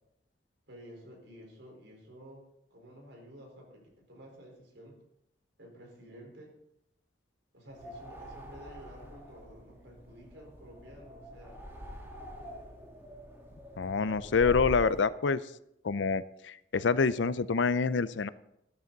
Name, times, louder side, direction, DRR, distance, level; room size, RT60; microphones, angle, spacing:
voice 1, 0.7-2.4 2.7-5.0 5.6-6.5 7.5-11.6, equal, 75° right, 1 dB, 4.4 m, -52 dB
sound 1, 7.7-15.0, equal, 15° right, 2.2 m, -44 dB
voice 2, 13.8-15.4 15.8-18.3, left 4 dB, 75° left, 16 dB, 0.5 m, -27 dB
13.5 x 13.0 x 4.0 m, 0.79 s
head